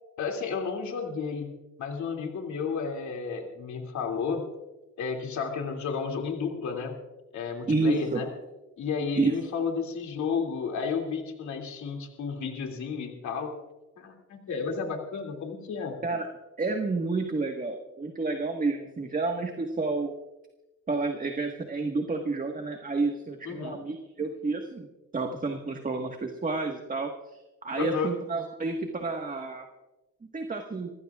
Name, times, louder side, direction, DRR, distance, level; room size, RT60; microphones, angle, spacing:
voice 1, 0.2-1.5 1.8-4.5 5.0-7.0 7.3-8.3 8.8-13.5 14.0-16.0 23.4-23.8 27.7-28.1, left 5 dB, 70° left, 2 dB, 2.6 m, -32 dB
voice 2, 7.7-8.2 9.1-9.3 16.0-16.3 16.6-20.1 20.9-24.9 25.1-27.4 27.6-29.7 30.3-30.9, right 3 dB, 25° right, 3 dB, 1.5 m, -30 dB
27.5 x 16.0 x 2.4 m, 1.0 s
cardioid pair, 90°, 30 cm